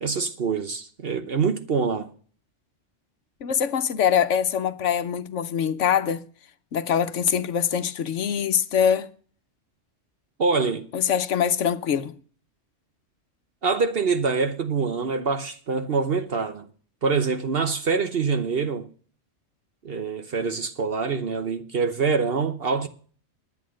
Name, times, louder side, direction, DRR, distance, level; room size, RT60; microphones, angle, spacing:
voice 1, 0.0-2.1 10.4-10.9 13.6-16.7 17.0-18.9 19.8-22.9, right 5 dB, 55° right, 1.0 m, -25 dB
voice 2, 3.4-6.2 6.7-9.1 10.9-12.1, left 8 dB, 75° left, 1.1 m, -23 dB
10.5 x 9.4 x 6.3 m
omnidirectional pair, 1.3 m